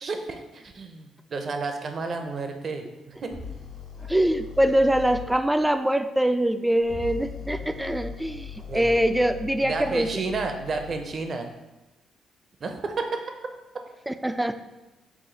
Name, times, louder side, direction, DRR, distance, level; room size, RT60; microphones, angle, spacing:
voice 1, 0.0-3.4 8.7-8.9 9.6-11.5 12.6-13.2, right 3 dB, 50° right, 5 dB, 0.6 m, -31 dB
sound 1, 3.3-5.3 6.8-11.1, left 6 dB, 80° left, 1.1 m, -39 dB
voice 2, 4.1-10.1 14.1-14.5, right 1 dB, 5° right, 9 dB, 0.3 m, -23 dB
5.9 x 2.3 x 3.9 m, 1.1 s
supercardioid pair, 70°, 0 cm